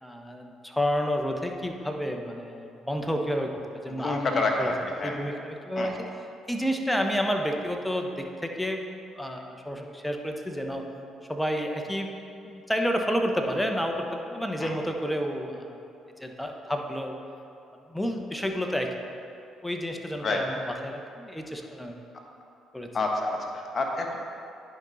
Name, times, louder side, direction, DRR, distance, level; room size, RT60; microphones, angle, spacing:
voice 1, 0.0-6.1 6.5-8.8 9.1-10.9 11.3-12.1 12.4-15.8 16.2-17.2 17.9-18.9 19.6-22.1 22.7-22.9, equal, 5° left, 3 dB, 1.0 m, -30 dB
voice 2, 3.9-4.7 5.0-5.2 5.8-5.9 14.6-14.7 20.2-20.4 22.9-24.2, left 3 dB, 45° left, 1 dB, 1.2 m, -28 dB
10.5 x 5.4 x 4.1 m, 2.7 s
supercardioid pair, 60°, 0 cm